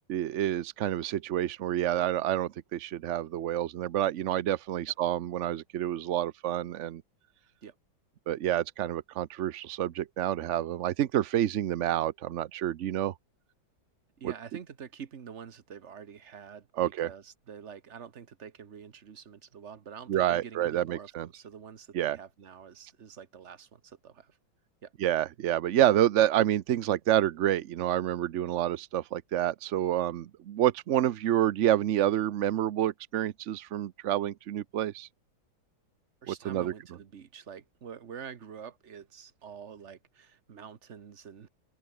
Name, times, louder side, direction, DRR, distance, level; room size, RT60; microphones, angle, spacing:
voice 1, 0.1-7.0 8.3-13.1 14.2-14.3 16.8-17.1 20.1-21.3 21.9-22.2 25.0-35.1 36.3-36.7, right 12 dB, 90° right, 0.6 m, -28 dB
voice 2, 14.2-24.4 24.8-24.9 36.2-41.5, right 7 dB, 40° right, 1.3 m, -47 dB
open air
omnidirectional pair, 2.1 m